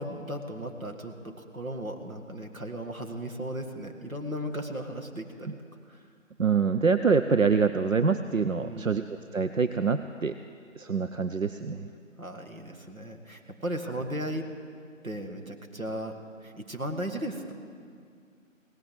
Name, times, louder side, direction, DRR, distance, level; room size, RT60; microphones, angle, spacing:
voice 1, 0.0-5.6 5.9-6.1 8.6-9.1 12.2-14.5 15.0-17.5, right 1 dB, 90° right, 4 dB, 1.9 m, -36 dB
voice 2, 6.4-9.0 9.3-10.3 10.8-11.9, right 5 dB, 70° right, 9 dB, 0.6 m, -25 dB
17.5 x 9.1 x 7.9 m, 2.2 s
figure-of-eight pair, 180°, 40 cm